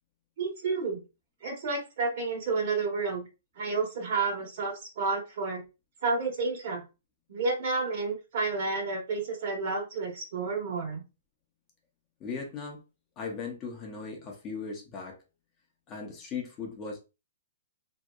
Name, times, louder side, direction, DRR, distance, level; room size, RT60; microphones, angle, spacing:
voice 1, 0.4-1.0 1.4-3.2 3.6-5.6 6.0-6.8 7.3-11.0, right 4 dB, 55° right, 1.2 m, -30 dB
voice 2, 12.2-12.8 13.2-15.2 15.9-17.0, left 5 dB, 25° left, 0.5 m, -38 dB
2.7 x 2.0 x 2.3 m
hypercardioid pair, 145°, 0 cm